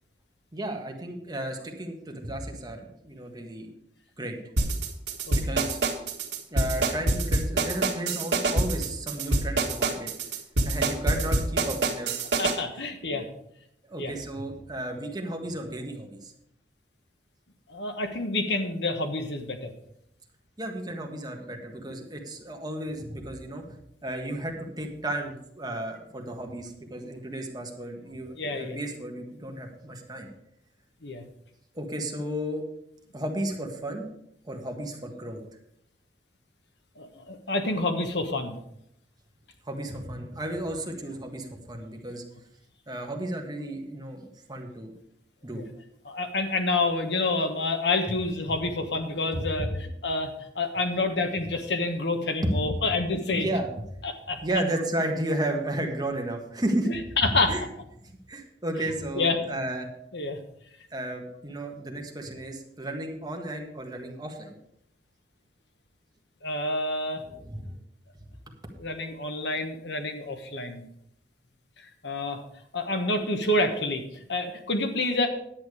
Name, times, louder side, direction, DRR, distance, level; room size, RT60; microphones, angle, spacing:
voice 1, 0.5-3.7 4.2-4.4 5.3-5.8 6.5-10.1 10.7-12.1 13.1-13.3 13.9-16.3 20.6-30.3 31.8-32.6 33.1-34.0 34.4-35.4 39.7-42.2 42.9-44.2 44.5-44.9 45.4-45.6 49.3-49.7 52.4-52.8 53.3-53.7 54.4-56.9 57.2-57.6 58.0-59.9 60.9-64.5 67.3-67.7 68.5-68.6, right 1 dB, 25° right, 2 dB, 1.6 m, -33 dB
sound 1, 4.6-12.6, right 2 dB, 70° right, 1.7 m, -25 dB
voice 2, 12.4-13.2 14.0-14.1 17.7-19.7 28.4-28.8 31.0-31.2 37.0-38.5 45.5-45.6 46.0-53.5 54.0-54.4 56.9-57.5 59.2-59.4 60.1-60.4 66.4-67.2 68.8-70.8 72.0-72.4 72.7-75.3, left 2 dB, 70° left, 6 dB, 1.4 m, -28 dB
10.5 x 8.9 x 4.9 m, 0.75 s
head